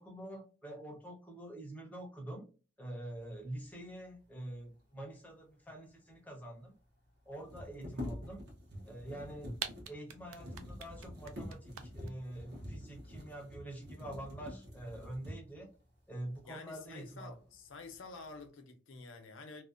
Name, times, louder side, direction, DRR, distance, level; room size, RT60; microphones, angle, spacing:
voice 1, 0.0-2.5 2.8-6.8 7.3-8.4 8.8-9.6 9.9-15.7 16.1-17.3, right 1 dB, 10° left, 0.5 m, -46 dB
sound 1, 5.9-6.0 6.1-6.2 7.3-15.7 16.3-16.5 16.9-17.5 17.9-18.4, left 1 dB, 55° right, 0.8 m, -47 dB
sound 2, 9.6-12.1, right 8 dB, 85° right, 0.3 m, -42 dB
voice 2, 16.5-19.6, left 4 dB, 70° left, 0.5 m, -49 dB
2.4 x 2.1 x 2.3 m
head